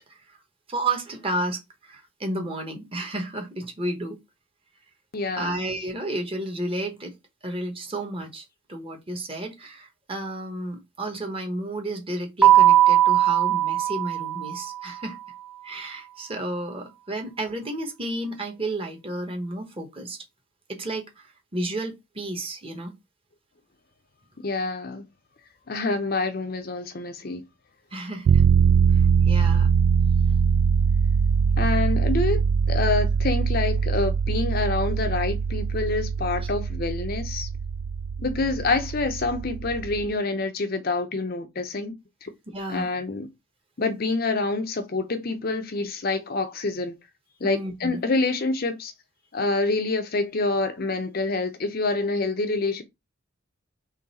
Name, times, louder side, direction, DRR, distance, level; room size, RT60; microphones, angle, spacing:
voice 1, 0.7-4.2 5.4-7.1 7.4-15.2 15.6-20.2 20.7-22.9 27.9-28.4 28.9-29.7 42.5-42.9 47.4-48.1, right 1 dB, 25° right, 1.1 m, -32 dB
voice 2, 5.1-5.6 24.4-25.1 25.7-27.4 31.6-37.5 38.2-42.3 42.7-43.3 43.8-47.0 47.4-48.9 49.3-52.8, left 3 dB, 45° left, 0.6 m, -27 dB
Keyboard (musical), 12.4-15.0, right 12 dB, 5° right, 0.4 m, -19 dB
sound 1, 28.2-40.1, right 6 dB, 80° right, 0.3 m, -22 dB
3.8 x 3.3 x 4.1 m
head